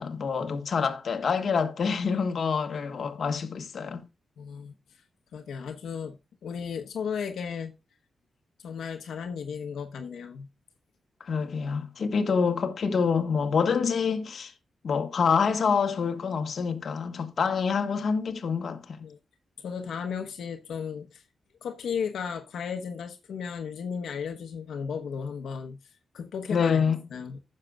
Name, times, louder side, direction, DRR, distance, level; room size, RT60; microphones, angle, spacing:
voice 1, 0.0-4.0 11.2-14.5 14.8-19.0 26.5-27.0, left 5 dB, 55° left, 1.4 m, -26 dB
voice 2, 4.4-4.7 5.3-6.2 6.4-7.7 8.6-10.5 19.0-19.2 19.6-21.2 21.6-25.8 26.1-26.8 27.1-27.4, left 6 dB, 85° left, 1.0 m, -35 dB
15.0 x 6.6 x 2.3 m
wide cardioid pair, 120°, 0 cm